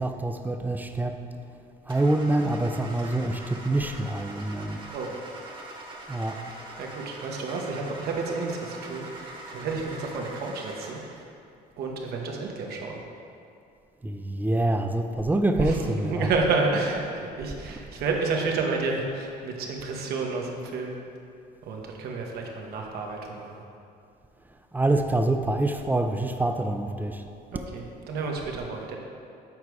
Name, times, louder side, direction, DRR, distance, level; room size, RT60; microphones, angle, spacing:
voice 1, 0.0-1.6 1.8-4.9 6.1-6.5 14.0-16.3 17.9-18.0 24.4-27.3 27.5-27.6, right 2 dB, 10° right, 6 dB, 0.4 m, -26 dB
Car / Engine starting, 1.9-11.2, right 2 dB, 30° right, 1.2 m, -43 dB
voice 2, 4.6-5.1 6.8-11.2 11.8-13.0 15.6-15.8 16.0-20.9 21.6-23.6 27.7-29.0, right 3 dB, 65° right, 0 dB, 1.1 m, -30 dB
7.4 x 4.6 x 4.7 m, 2.5 s
cardioid pair, 110°, 17 cm